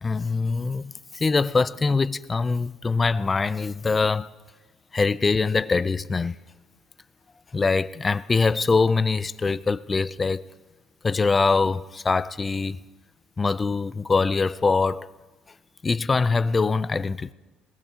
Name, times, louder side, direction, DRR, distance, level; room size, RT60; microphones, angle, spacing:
voice 1, 0.0-4.3 4.9-6.4 7.5-10.4 11.0-12.8 13.4-15.1 15.8-17.3, left 4 dB, 20° left, 0.4 m, -23 dB
21.0 x 19.5 x 2.8 m
cardioid pair, 130°, 0 cm